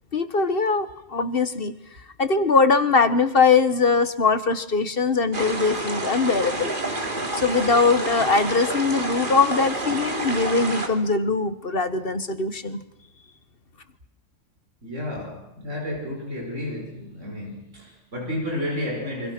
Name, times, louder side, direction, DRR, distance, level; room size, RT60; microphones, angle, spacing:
voice 1, 0.1-1.8 2.2-6.8 7.3-12.8, left 4 dB, 50° left, 11 dB, 1.6 m, -21 dB
sound 1, 5.3-10.9, right 2 dB, 45° right, 3.2 m, -29 dB
voice 2, 14.8-19.3, left 1 dB, 75° right, 0 dB, 6.0 m, -31 dB
27.5 x 25.5 x 6.2 m, 0.78 s
omnidirectional pair, 1.3 m